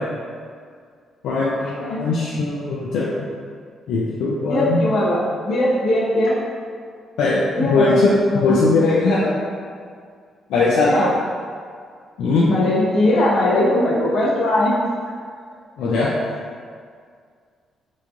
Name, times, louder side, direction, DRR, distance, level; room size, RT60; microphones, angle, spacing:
voice 1, 1.2-3.3 3.9-4.8 7.2-9.4 10.5-10.9 12.2-12.5 15.8-16.1, left 3 dB, 80° left, -6 dB, 0.3 m, -19 dB
voice 2, 4.5-6.3 7.6-8.0 8.3-8.6 10.9-11.1 12.5-14.7, left 1 dB, 60° left, -5 dB, 0.7 m, -19 dB
3.0 x 2.2 x 2.5 m, 2.1 s
cardioid pair, 90°, 0 cm